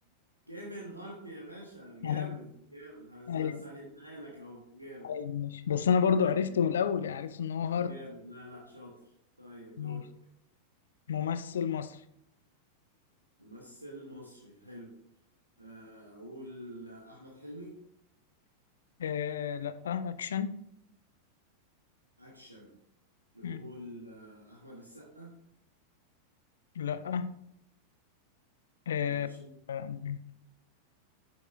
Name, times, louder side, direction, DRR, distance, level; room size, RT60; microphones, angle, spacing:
voice 1, 0.5-5.1 6.0-6.6 7.8-9.0 9.4-10.1 13.4-14.9 15.6-17.7 22.2-22.7 23.3-25.3 29.0-29.5, equal, 85° right, 1.3 m, -47 dB
voice 2, 2.0-2.4 3.3-3.6 5.0-7.9 9.8-10.1 11.1-12.0 19.0-20.5 23.4-23.6 26.8-27.3 28.9-29.3 29.7-30.2, left 7 dB, 65° left, 0.4 m, -30 dB
8.7 x 6.3 x 2.3 m
figure-of-eight pair, 90°, 0 cm